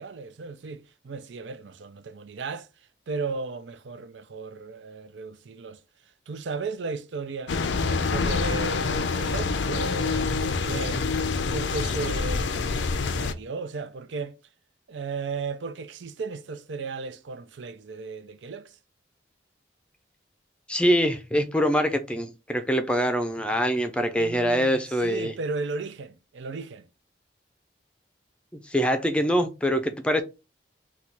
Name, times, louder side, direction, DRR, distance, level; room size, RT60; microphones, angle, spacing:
voice 1, 0.0-5.8 6.3-11.1 11.5-14.4 14.9-18.8 24.1-26.9, right 4 dB, 85° right, 0.5 m, -35 dB
sound 1, 7.5-13.3, left 4 dB, 90° left, 0.5 m, -26 dB
voice 2, 20.7-25.3 28.7-30.2, equal, 5° left, 0.5 m, -24 dB
4.1 x 2.3 x 4.5 m
head